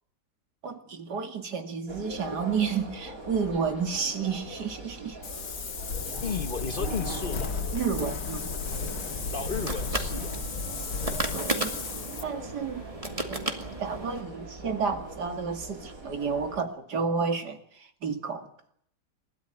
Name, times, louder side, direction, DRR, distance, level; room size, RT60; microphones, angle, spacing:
voice 1, 0.6-5.2 7.7-8.5 11.3-11.8 12.2-12.8 13.3-18.7, right 5 dB, 70° right, 7 dB, 2.8 m, -31 dB
sound 1, 1.9-16.6, right 2 dB, 50° right, 4.7 m, -42 dB
Wind, 5.2-12.2, left 5 dB, 80° left, 2.4 m, -34 dB
voice 2, 6.2-7.5 9.3-10.4, left 4 dB, 35° left, 9 dB, 1.3 m, -34 dB
sound 2, 8.7-14.2, right 2 dB, 20° right, 2.3 m, -35 dB
28.5 x 13.0 x 9.4 m, 0.68 s
omnidirectional pair, 1.8 m